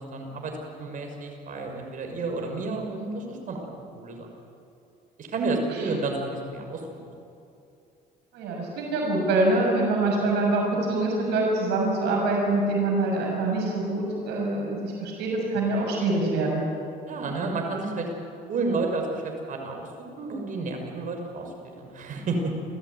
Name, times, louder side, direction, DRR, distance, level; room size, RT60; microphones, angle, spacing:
voice 1, 0.1-0.5 0.8-3.7 4.0-4.3 5.2-6.8 17.1-18.1 18.5-19.9 20.2-21.5 21.8-22.5, right 3 dB, 50° right, 3 dB, 5.7 m, -30 dB
voice 2, 8.3-16.6, right 2 dB, 85° right, -1 dB, 6.7 m, -25 dB
30.0 x 14.5 x 9.5 m, 2.6 s
cardioid pair, 110°, 17 cm